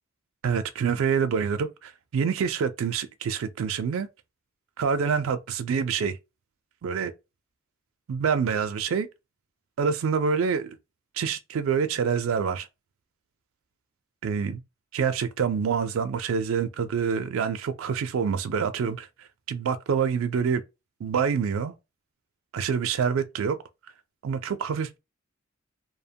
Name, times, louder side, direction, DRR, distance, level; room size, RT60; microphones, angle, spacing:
voice 1, 0.4-4.1 4.8-6.2 6.8-7.1 8.1-9.1 9.8-10.8 11.2-12.7 14.2-14.6 14.9-19.1 19.5-20.6 21.0-21.7 22.5-23.6 24.2-25.0, right 6 dB, 80° right, 0.4 m, -26 dB
2.7 x 2.1 x 2.7 m
head